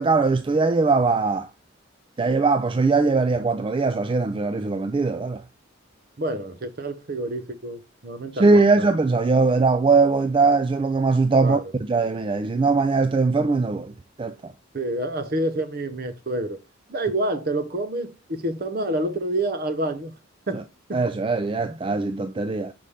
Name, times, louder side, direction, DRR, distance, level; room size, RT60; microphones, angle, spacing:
voice 1, 0.0-1.5 2.2-5.4 8.3-13.9 14.2-14.5 20.5-20.6 20.9-22.7, right 3 dB, 25° right, 0.3 m, -21 dB
voice 2, 6.2-8.9 11.4-11.6 14.7-16.6 16.9-20.1 20.5-20.6, right 1 dB, 45° right, 0.8 m, -28 dB
5.5 x 5.1 x 3.3 m
head